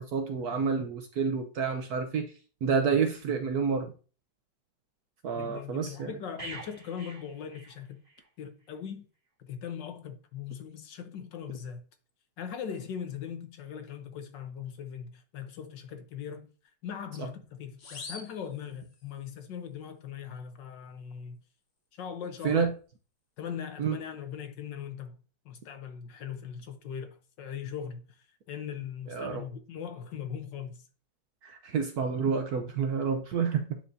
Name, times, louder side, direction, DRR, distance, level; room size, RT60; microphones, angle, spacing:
voice 1, 0.0-2.3 2.6-3.9 5.2-6.1 22.4-22.7 23.8-24.0 29.1-29.4 31.4-33.8, right 6 dB, 65° right, 1.0 m, -29 dB
voice 2, 5.4-8.0 8.4-9.1 9.4-11.8 12.4-16.5 16.8-21.4 21.9-22.7 23.4-25.2 25.4-30.9, left 8 dB, 65° left, 1.5 m, -40 dB
sound 1, 6.4-8.3 8.6-8.8, right 2 dB, 20° right, 2.8 m, -45 dB
sound 2, 17.8-19.3, left 3 dB, 40° left, 1.2 m, -46 dB
10.0 x 4.7 x 2.7 m
omnidirectional pair, 2.2 m